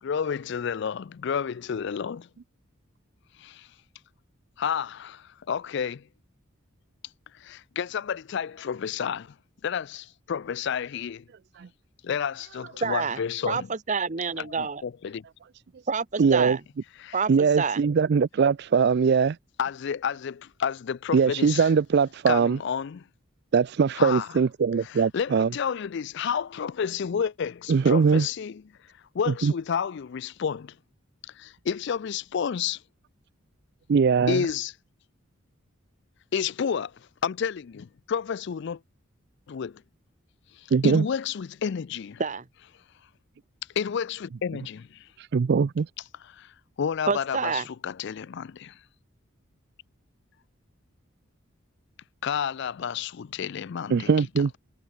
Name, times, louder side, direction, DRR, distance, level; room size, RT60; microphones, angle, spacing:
voice 1, 0.0-2.3 3.4-3.7 4.6-6.0 7.3-9.3 9.6-11.2 12.0-13.7 14.4-15.2 17.0-17.2 19.6-21.7 22.3-23.0 24.0-24.3 24.8-28.6 29.1-30.7 31.4-32.8 34.3-34.7 36.3-36.9 37.2-38.8 39.5-39.8 40.6-42.2 43.8-45.1 46.2-46.5 46.8-48.8 52.2-54.1, left 7 dB, 55° left, 0.4 m, -30 dB
voice 2, 12.8-14.8 15.9-16.6 17.1-17.3 17.6-17.8 42.2-42.4 47.1-47.7, right 5 dB, 35° right, 0.9 m, -28 dB
voice 3, 16.2-16.6 17.3-19.4 21.1-22.6 23.5-25.5 27.7-28.3 29.3-29.5 33.9-34.5 40.7-41.1 45.3-45.9 53.9-54.5, right 5 dB, 50° right, 0.4 m, -21 dB
head